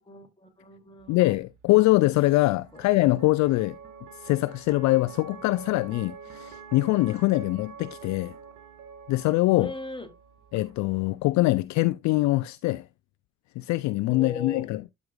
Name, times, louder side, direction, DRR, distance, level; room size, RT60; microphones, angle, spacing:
voice 1, 0.1-1.2 2.7-2.8 9.6-10.1 14.1-14.7, left 3 dB, 15° left, 2.4 m, -38 dB
sound 1, 1.0-11.3, right 6 dB, 55° right, 1.4 m, -47 dB
voice 2, 1.1-3.8 4.1-8.4 9.1-9.7 10.5-12.9 13.6-14.9, left 19 dB, 55° left, 0.4 m, -23 dB
12.0 x 5.2 x 2.3 m
figure-of-eight pair, 45°, 35 cm